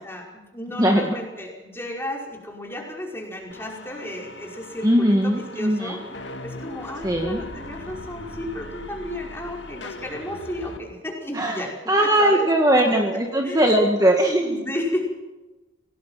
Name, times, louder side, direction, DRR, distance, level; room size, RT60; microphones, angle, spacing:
voice 1, 0.0-6.0 6.4-11.7 12.0-12.5 12.8-12.9 13.4-13.8 14.4-15.1, left 1 dB, 10° left, -1 dB, 5.3 m, -33 dB
voice 2, 0.8-1.1 4.8-6.0 7.0-7.4 11.3-14.6, right 1 dB, 20° right, 1 dB, 1.9 m, -20 dB
sound 1, 3.5-10.8, left 2 dB, 65° left, 2.1 m, -39 dB
27.0 x 18.5 x 5.8 m, 1.1 s
head